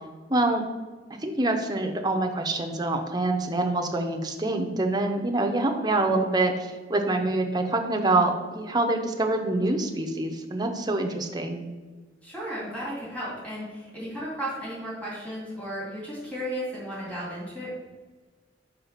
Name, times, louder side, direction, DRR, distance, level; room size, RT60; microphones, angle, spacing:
voice 1, 0.3-0.6 1.2-11.6, right 2 dB, 25° right, 3 dB, 0.7 m, -26 dB
voice 2, 12.2-17.7, equal, 10° left, -7 dB, 2.2 m, -34 dB
5.6 x 3.9 x 5.7 m, 1.3 s
head